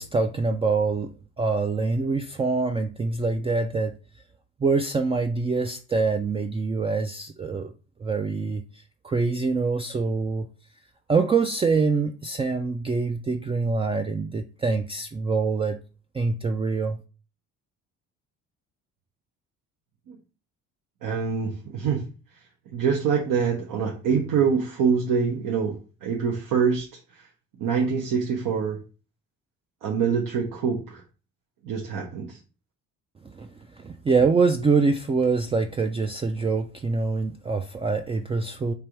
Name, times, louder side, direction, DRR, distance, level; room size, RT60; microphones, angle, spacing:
voice 1, 0.0-3.9 4.6-7.7 8.0-10.5 11.1-15.8 16.1-17.0 33.2-38.7, right 4 dB, 15° right, 0.3 m, -25 dB
voice 2, 21.0-22.1 22.7-25.8 26.0-27.3 27.6-28.8 29.8-31.0 31.6-32.4, right 6 dB, 70° right, 0.9 m, -25 dB
3.3 x 2.6 x 4.4 m
supercardioid pair, 70°, 34 cm